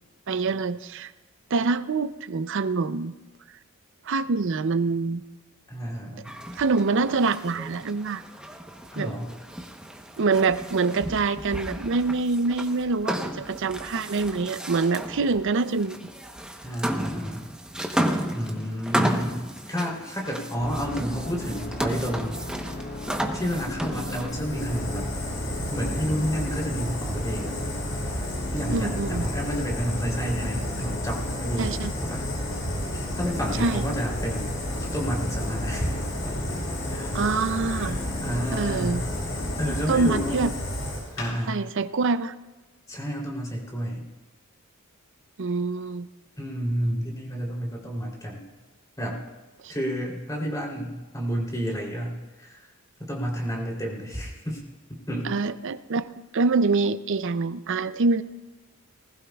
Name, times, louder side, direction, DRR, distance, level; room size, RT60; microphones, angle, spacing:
voice 1, 0.3-1.1 1.5-3.1 4.1-5.2 6.6-8.2 9.0-9.1 10.2-16.0 28.7-29.3 31.6-31.9 33.6-33.8 37.1-38.0 38.5-39.0 39.9-40.5 41.5-42.3 45.4-46.1 49.6-49.7 55.2-58.2, right 4 dB, 60° right, 13 dB, 0.5 m, -25 dB
voice 2, 5.7-6.3 8.9-9.3 16.6-17.5 18.3-22.5 23.3-25.1 25.7-27.5 28.5-31.7 32.0-32.2 32.9-36.0 36.2-36.6 36.9-37.2 37.7-39.1 39.6-40.5 41.2-41.6 42.9-44.1 46.4-48.5 49.0-49.2 49.7-52.6 53.0-54.6 54.9-55.3, equal, 15° left, -2 dB, 3.2 m, -30 dB
sound 1, 6.3-24.4, equal, 5° right, 0.9 m, -33 dB
sound 2, 20.6-40.3, left 1 dB, 40° left, 1.5 m, -36 dB
Fire, 24.3-41.3, left 1 dB, 70° left, 4.8 m, -32 dB
20.0 x 15.5 x 2.4 m, 1.2 s
head